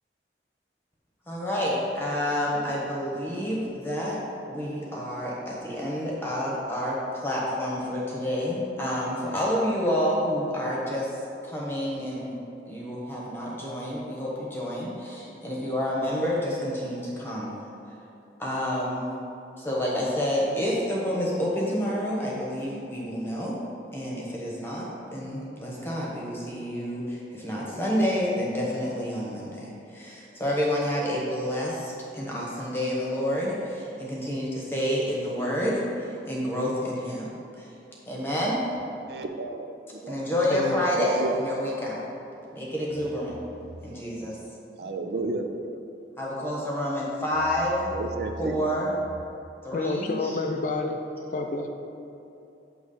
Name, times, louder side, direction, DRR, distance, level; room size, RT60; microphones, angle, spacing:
voice 1, 1.3-4.2 4.5-11.1 11.4-12.4 12.7-17.5 18.4-19.1 19.6-23.5 23.9-24.8 25.1-37.3 37.6-37.7 38.1-38.6 40.1-42.1 42.5-43.3 43.8-44.4 46.2-47.9 48.4-48.9 49.6-50.4, equal, 15° left, -5 dB, 1.1 m, -29 dB
voice 2, 39.1-39.7 39.9-40.2 40.9-41.5 43.9-44.3 44.8-45.5 47.9-48.6, right 2 dB, 65° right, 5 dB, 0.5 m, -32 dB
voice 3, 40.5-40.8 49.7-51.0 51.3-51.7, left 3 dB, 45° left, 3 dB, 0.4 m, -29 dB
8.2 x 3.1 x 5.5 m, 2.8 s
head